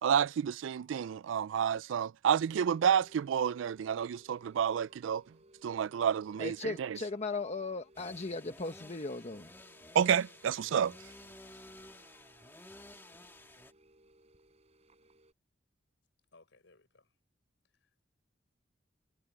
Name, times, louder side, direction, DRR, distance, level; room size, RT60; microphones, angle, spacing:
voice 1, 0.0-5.2 5.6-6.5 9.9-10.9, right 8 dB, 80° right, 0.3 m, -29 dB
sound 1, 2.4-15.3, right 1 dB, 35° right, 5.8 m, -63 dB
voice 2, 6.4-9.5, left 3 dB, 35° left, 1.2 m, -37 dB
sound 2, 7.9-13.7, left 1 dB, 10° left, 1.4 m, -53 dB
voice 3, 16.3-17.1 17.8-18.0, left 3 dB, 70° left, 5.8 m, -63 dB
head